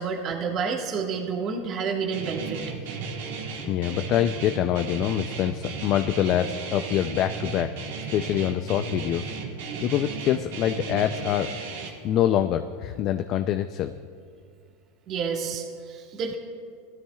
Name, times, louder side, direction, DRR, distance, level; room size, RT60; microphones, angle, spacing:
voice 1, 0.0-2.7 15.1-16.4, right 5 dB, 40° right, 1 dB, 1.5 m, -29 dB
Guitar, 2.1-11.9, right 5 dB, 75° right, 1.7 m, -35 dB
voice 2, 3.6-7.7 8.1-9.3 9.8-11.5 12.0-13.9, left 11 dB, 45° left, 9 dB, 0.4 m, -25 dB
17.5 x 12.5 x 2.3 m, 2.2 s
supercardioid pair, 125°, 0 cm